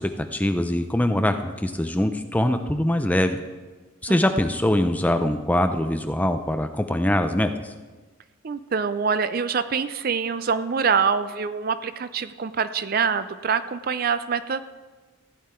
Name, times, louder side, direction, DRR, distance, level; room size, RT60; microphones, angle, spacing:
voice 1, 0.0-3.4 4.0-7.7, left 1 dB, 5° left, 7 dB, 0.5 m, -23 dB
voice 2, 4.1-4.5 8.4-14.6, right 6 dB, 45° right, 13 dB, 0.4 m, -25 dB
15.5 x 9.5 x 4.4 m, 1.3 s
head